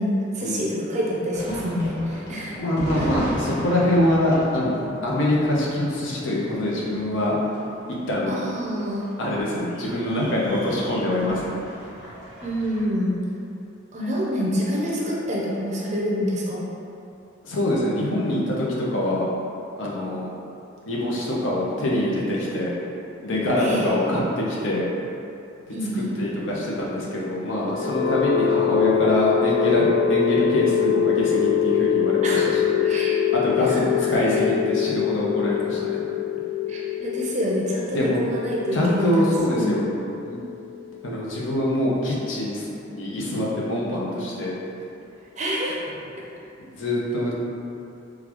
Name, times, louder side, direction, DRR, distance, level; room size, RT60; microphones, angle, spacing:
voice 1, 0.0-2.6 8.3-9.1 12.4-13.1 13.9-16.6 23.6-23.9 25.7-26.1 32.2-32.5 32.8-33.2 33.6-34.4 36.7-39.8 45.4-45.9, equal, 35° right, -4 dB, 0.5 m, -27 dB
sound 1, 1.3-12.8, equal, 55° left, 1.1 m, -36 dB
voice 2, 2.6-7.4 8.1-8.3 9.2-11.6 17.4-19.3 19.8-20.3 20.9-22.7 23.2-24.9 25.7-32.8 33.3-36.0 37.9-38.2 38.7-39.8 40.2-40.4 41.0-44.5 46.7-47.3, left 1 dB, 75° left, -5 dB, 0.7 m, -24 dB
sound 2, 27.5-41.4, left 8 dB, 35° left, 1.3 m, -24 dB
3.7 x 2.3 x 3.0 m, 2.7 s
head